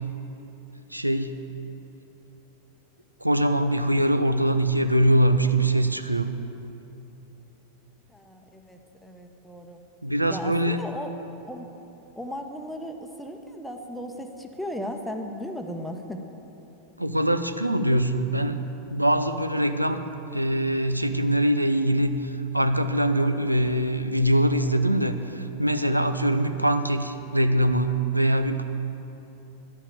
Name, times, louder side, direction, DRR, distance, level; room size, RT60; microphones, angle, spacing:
voice 1, 0.9-1.4 3.2-6.3 10.0-10.8 17.0-18.6 18.9-20.0 20.3-28.6, right 1 dB, 90° right, 9 dB, 0.5 m, -23 dB
voice 2, 8.1-9.8 10.3-11.1 11.4-11.7 12.1-16.2, equal, ahead, 4 dB, 0.9 m, -36 dB
11.5 x 5.7 x 8.6 m, 3.0 s
figure-of-eight pair, 90°, 0 cm